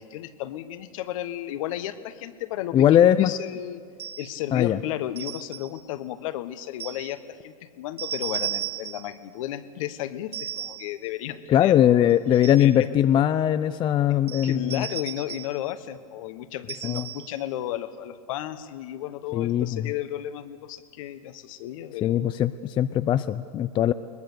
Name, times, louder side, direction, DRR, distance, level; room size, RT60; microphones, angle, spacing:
voice 1, 0.0-3.8 4.2-12.1 12.6-12.9 14.4-22.2, left 12 dB, 60° left, 12 dB, 1.3 m, -34 dB
voice 2, 2.7-3.3 4.5-4.8 11.5-14.8 16.8-17.1 19.3-19.9 22.0-23.9, left 11 dB, 25° left, 12 dB, 0.5 m, -20 dB
sound 1, 4.0-4.4 5.2-5.8 6.8-7.1 8.0-9.2 10.3-11.0 12.1-12.8 14.3-15.6 16.7-17.4, right 10 dB, 85° right, 2.0 m, -35 dB
22.0 x 20.0 x 6.9 m, 2.3 s
hypercardioid pair, 115°, 19 cm